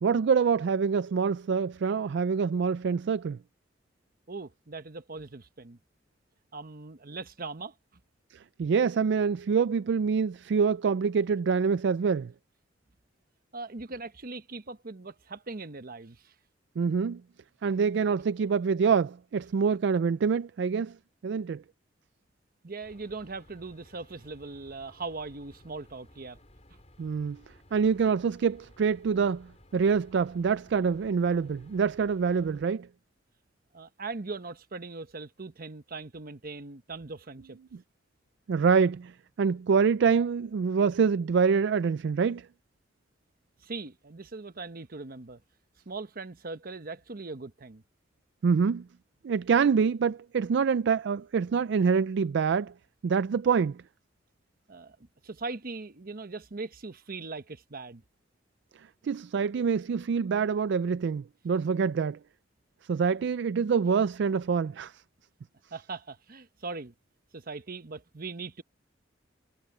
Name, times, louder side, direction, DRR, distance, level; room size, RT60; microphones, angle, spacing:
voice 1, 0.0-3.4 8.3-12.3 16.8-17.2 17.6-21.0 21.2-21.6 27.0-27.4 27.7-32.9 38.5-39.1 39.4-42.5 48.4-48.8 49.2-52.7 53.0-53.8 59.0-62.2 62.9-65.0, right 5 dB, 65° right, 0.4 m, -26 dB
voice 2, 4.3-5.8 6.5-7.7 13.5-16.3 22.6-26.4 33.7-37.6 43.6-45.4 45.9-47.8 54.7-55.0 55.2-58.0 65.7-66.9 67.3-68.6, right 3 dB, 50° right, 1.0 m, -40 dB
sound 1, 22.8-32.6, left 1 dB, 35° left, 4.5 m, -57 dB
head